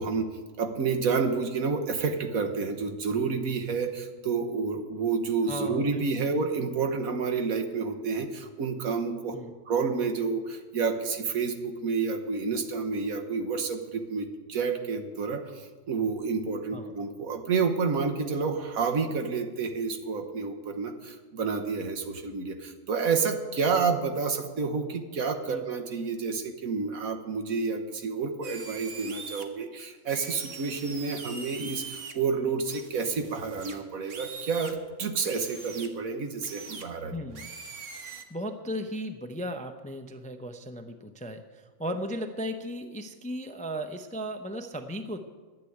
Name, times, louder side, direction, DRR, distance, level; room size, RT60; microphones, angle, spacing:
voice 1, 0.0-9.4 9.7-37.1, right 5 dB, 80° right, 6 dB, 1.6 m, -29 dB
voice 2, 5.5-6.2 9.3-9.5 16.7-16.9 25.5-25.6 37.1-37.5 38.0-45.2, equal, 10° left, 6 dB, 0.4 m, -36 dB
sound 1, 28.4-29.4 30.1-32.1 32.7-34.8 35.2-35.9 36.4-36.8 37.3-38.2, right 5 dB, 65° right, 1.4 m, -42 dB
12.0 x 7.6 x 9.2 m, 1.4 s
omnidirectional pair, 1.5 m